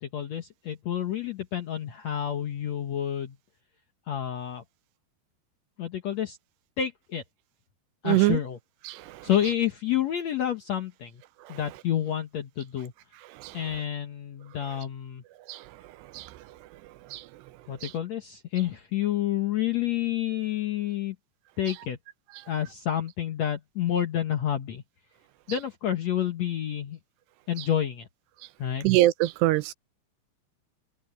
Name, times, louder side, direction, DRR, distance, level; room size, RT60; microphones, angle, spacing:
voice 1, 0.0-3.4 4.1-4.6 5.8-6.4 6.8-7.2 8.0-8.6 9.2-11.2 11.5-12.9 13.5-15.2 17.7-21.1 21.6-22.0 22.5-24.8 25.5-27.0 27.5-28.1 28.6-28.9, left 10 dB, 80° left, 1.5 m, -29 dB
voice 2, 8.0-8.4 8.9-9.3 13.4-13.6 15.5-15.6 16.1-16.3 17.1-17.2 17.8-17.9 28.8-29.7, right 17 dB, 85° right, 2.7 m, -24 dB
omnidirectional pair, 5.0 m